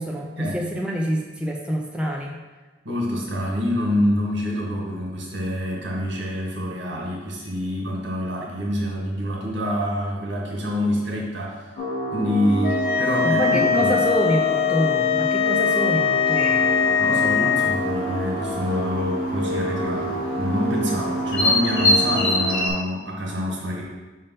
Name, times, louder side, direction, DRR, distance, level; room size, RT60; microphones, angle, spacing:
voice 1, 0.0-2.4 13.2-16.7, equal, 5° right, -1 dB, 0.5 m, -26 dB
voice 2, 2.8-11.7 12.1-14.0 15.5-15.6 17.0-23.8, equal, 80° right, -2 dB, 1.6 m, -26 dB
sound 1, 11.8-22.6, right 1 dB, 25° left, 1.5 m, -28 dB
sound 2, 12.6-17.8, left 8 dB, 55° left, 0.3 m, -21 dB
sound 3, 16.3-22.7, left 2 dB, 75° left, 2.0 m, -27 dB
5.6 x 3.4 x 5.5 m, 1.2 s
head